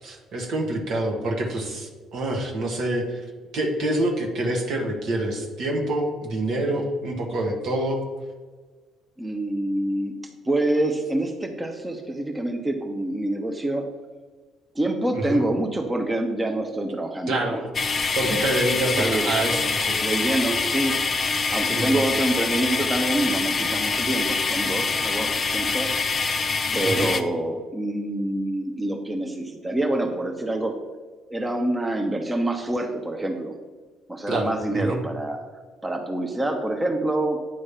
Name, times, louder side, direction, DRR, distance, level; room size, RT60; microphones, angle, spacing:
voice 1, 0.0-3.3 3.5-8.0 15.1-15.4 17.3-17.7 18.1-20.0 21.7-22.0 26.8-27.1 34.3-35.0, right 1 dB, 60° right, 1 dB, 1.4 m, -26 dB
voice 2, 9.2-14.0 14.7-17.6 19.0-19.3 20.0-21.1 21.5-25.9 26.7-30.7 31.3-33.5 34.1-35.4 35.8-37.4, right 1 dB, 20° right, 3 dB, 0.9 m, -26 dB
sound 1, 17.7-27.2, left 4 dB, 40° left, 0.7 m, -25 dB
9.0 x 3.2 x 5.7 m, 1.4 s
hypercardioid pair, 55°, 0 cm